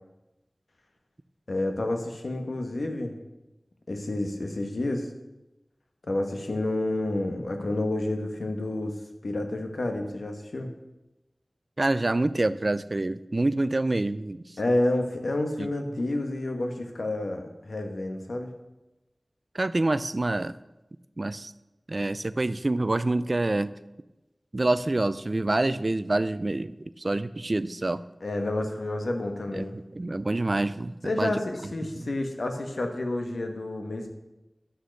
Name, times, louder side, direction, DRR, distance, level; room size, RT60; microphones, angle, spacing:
voice 1, 1.5-3.1 3.9-5.1 6.1-10.8 14.6-18.5 28.2-29.8 31.0-34.1, left 1 dB, 85° left, 4 dB, 1.4 m, -29 dB
voice 2, 11.8-14.6 15.6-15.7 19.5-20.5 21.2-21.5 21.9-23.7 24.5-28.0 29.5-30.9 31.2-31.4 31.6-31.7 32.0-32.1, right 2 dB, 50° right, 14 dB, 0.5 m, -27 dB
11.0 x 6.6 x 6.5 m, 1.0 s
wide cardioid pair, 45°, 0 cm